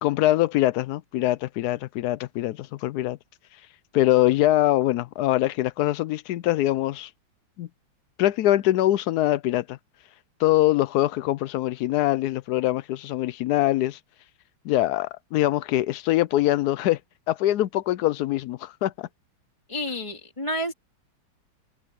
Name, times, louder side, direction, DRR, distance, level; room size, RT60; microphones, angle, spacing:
voice 1, 0.0-3.2 3.9-7.1 7.6-7.7 8.2-9.8 10.4-14.0 14.6-17.0 17.3-19.1, left 15 dB, 85° left, 0.8 m, -23 dB
voice 2, 19.7-20.7, equal, 15° left, 2.2 m, -30 dB
omnidirectional pair, 2.2 m